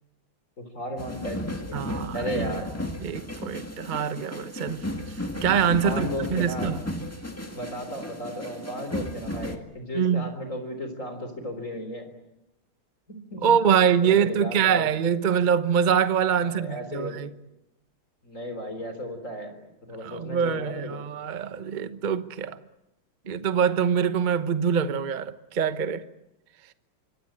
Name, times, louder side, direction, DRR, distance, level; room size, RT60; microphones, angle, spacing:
voice 1, 0.6-2.7 5.8-6.7 7.5-12.1 13.1-13.5 14.0-14.8 16.4-17.1 18.2-19.5 19.8-21.0, equal, 35° left, 4.1 m, -35 dB
sound 1, 1.0-9.6, left 1 dB, 5° left, 1.8 m, -34 dB
voice 2, 1.7-2.5 3.0-6.8 9.9-10.3 13.4-17.3 20.0-22.6 23.2-26.0, right 7 dB, 35° right, 0.7 m, -24 dB
25.5 x 24.0 x 8.8 m
omnidirectional pair, 2.4 m